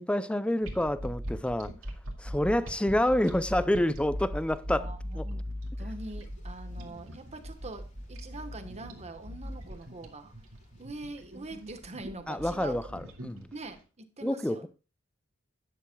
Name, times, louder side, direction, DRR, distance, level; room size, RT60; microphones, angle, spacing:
voice 1, 0.0-1.7 2.2-4.9 5.2-5.3 12.3-13.5 14.2-14.7, left 1 dB, 5° left, 0.5 m, -28 dB
sound 1, 0.6-13.7, equal, 75° right, 2.2 m, -40 dB
voice 2, 2.4-2.8 4.8-5.4 5.8-10.3 10.8-12.7 13.5-14.7, right 2 dB, 35° right, 1.3 m, -43 dB
sound 2, 5.9-11.9, left 1 dB, 35° left, 3.9 m, -58 dB
12.0 x 10.0 x 2.3 m
head